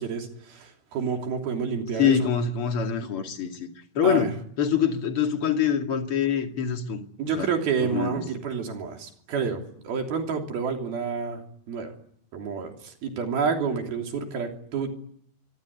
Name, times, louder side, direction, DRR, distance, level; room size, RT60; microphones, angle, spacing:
voice 1, 0.0-2.3 3.2-3.3 4.0-4.3 7.2-11.4 11.7-11.9 12.3-14.9, right 6 dB, 75° right, 5.0 m, -29 dB
voice 2, 2.0-7.5 7.8-8.2, left 8 dB, 40° left, 2.9 m, -25 dB
25.5 x 24.5 x 9.8 m
omnidirectional pair, 4.3 m